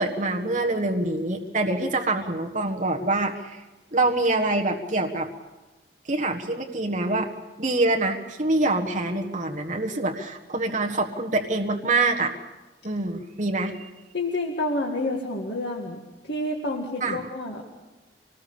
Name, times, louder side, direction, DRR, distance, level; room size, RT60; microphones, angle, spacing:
voice 1, 0.0-3.6 3.9-5.3 6.0-7.3 7.6-12.3 12.8-13.9 17.0-17.2, right 2 dB, 45° right, 1 dB, 1.5 m, -25 dB
voice 2, 14.1-16.0 16.2-17.7, left 2 dB, 65° left, -1 dB, 2.0 m, -29 dB
24.5 x 19.5 x 7.0 m, 1.1 s
head